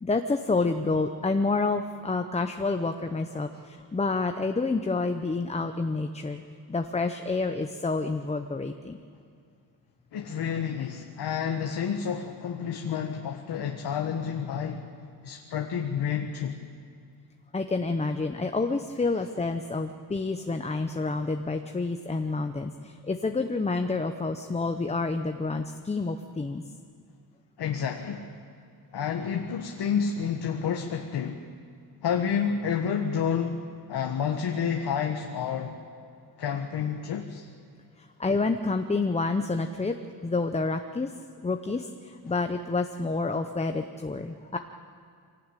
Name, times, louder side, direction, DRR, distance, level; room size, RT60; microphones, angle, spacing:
voice 1, 0.0-6.4 6.7-9.0 17.5-26.6 38.2-40.0 40.2-41.1 41.4-44.6, left 3 dB, 15° left, 6 dB, 0.8 m, -28 dB
voice 2, 10.1-14.8 15.2-16.6 27.6-28.3 28.9-31.4 32.0-35.8 36.4-37.5, left 7 dB, 80° left, 3 dB, 1.6 m, -29 dB
24.0 x 18.5 x 9.1 m, 2.4 s
wide cardioid pair, 140°, 39 cm